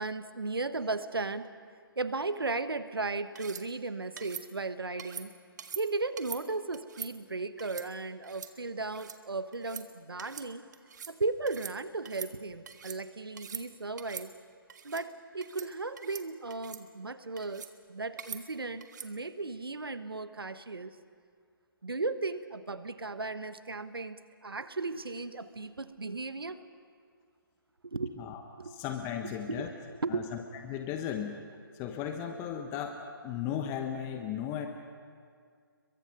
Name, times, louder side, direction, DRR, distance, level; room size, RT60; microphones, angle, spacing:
voice 1, 0.0-1.5 2.0-5.3 5.7-10.6 11.1-14.3 14.8-20.9 21.8-26.6 27.8-28.2 28.6-28.7 29.5-29.7 30.0-30.3, right 3 dB, 75° right, 12 dB, 1.3 m, -36 dB
sound 1, 3.4-3.6 4.2-4.5 5.0-5.3 5.6-5.8 6.2-6.4 6.7-7.1 7.6-7.9 8.2-8.5 8.8-9.2 9.5-9.9 10.2-10.5 10.7-11.1 11.5-11.8 12.0-13.0 13.3-13.6 14.0-14.3 14.7-15.0 15.4-15.7 16.0-16.2 16.5-16.8 17.4-17.7 18.2-18.4 18.8-19.1, right 7 dB, 50° right, 1.5 m, -43 dB
voice 2, 28.2-29.7 30.1-31.4 31.7-34.7, left 9 dB, 20° left, 5 dB, 1.1 m, -36 dB
29.5 x 23.0 x 5.4 m, 2.1 s
figure-of-eight pair, 140°, 12 cm